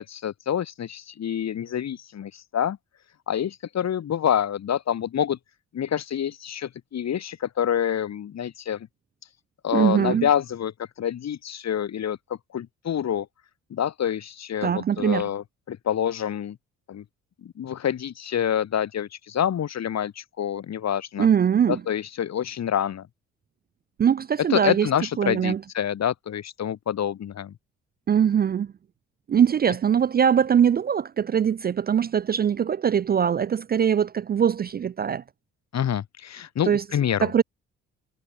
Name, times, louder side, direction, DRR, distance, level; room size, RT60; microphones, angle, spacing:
voice 1, 0.0-2.8 3.3-5.4 5.7-8.9 9.6-12.2 12.5-13.3 13.7-16.6 16.9-17.0 17.4-21.3 21.7-23.1 24.5-27.5 35.7-37.3, left 9 dB, 55° left, 1.7 m, -27 dB
voice 2, 9.7-10.3 14.6-15.2 21.2-21.8 24.0-24.9 25.2-25.6 28.1-28.7 29.3-35.2 36.7-36.8 37.2-37.4, right 8 dB, 30° right, 0.4 m, -22 dB
supercardioid pair, 55°, 31 cm